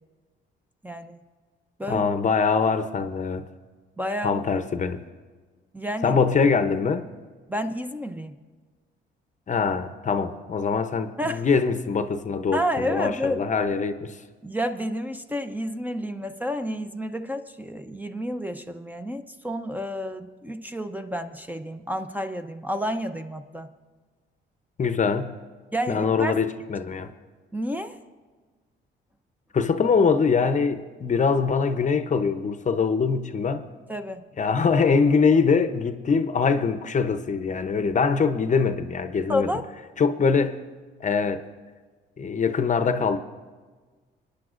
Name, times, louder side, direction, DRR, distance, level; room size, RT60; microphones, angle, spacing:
voice 1, 0.8-1.2 1.8-2.0 4.0-4.4 5.7-6.2 7.5-8.3 11.2-11.5 12.5-13.4 14.4-23.7 25.7-26.3 27.5-28.0 33.9-34.2 39.3-39.6, equal, 10° right, 7 dB, 0.6 m, -30 dB
voice 2, 1.9-3.5 4.2-5.0 6.0-7.1 9.5-14.2 24.8-25.4 25.9-27.1 29.5-33.7 34.4-39.5 40.0-40.6 41.0-41.4 42.2-43.2, left 5 dB, 40° left, 10 dB, 0.7 m, -23 dB
28.0 x 10.0 x 2.5 m, 1.4 s
cardioid pair, 90°, 20 cm